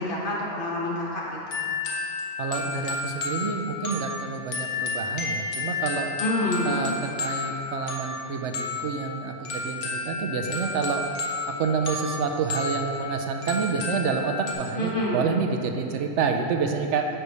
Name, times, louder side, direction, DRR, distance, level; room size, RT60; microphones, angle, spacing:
voice 1, 0.0-1.6 6.2-6.7 14.7-15.2, left 1 dB, 50° left, -5 dB, 1.4 m, -28 dB
sound 1, 1.5-14.5, left 3 dB, 90° left, 1.2 m, -32 dB
voice 2, 2.4-6.1 6.6-11.1 11.6-17.1, right 5 dB, 90° right, 5 dB, 0.9 m, -28 dB
8.9 x 3.3 x 5.3 m, 2.7 s
omnidirectional pair, 1.2 m